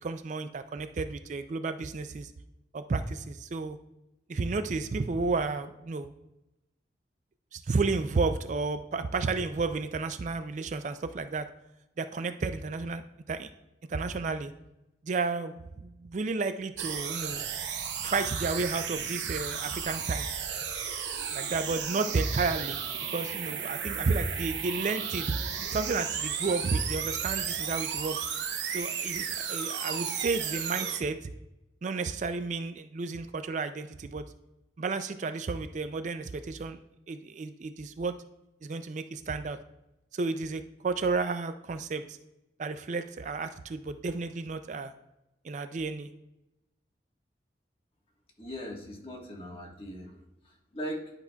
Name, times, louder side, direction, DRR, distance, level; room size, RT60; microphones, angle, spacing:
voice 1, 0.0-2.3 2.7-3.8 4.3-6.1 7.5-11.5 12.0-13.0 13.3-13.5 13.9-14.5 15.0-17.4 18.0-20.3 21.3-22.8 23.1-25.4 25.7-28.2 28.7-31.3 31.8-34.2 34.8-36.8 37.1-38.2 38.6-39.6 40.1-42.2 42.6-44.9 45.4-46.1, right 4 dB, 45° right, 9 dB, 0.4 m, -32 dB
sound 1, 16.8-31.0, right 7 dB, 90° right, 0.8 m, -34 dB
voice 2, 48.4-51.1, equal, 30° left, 0 dB, 1.4 m, -40 dB
10.5 x 5.8 x 2.3 m, 0.92 s
head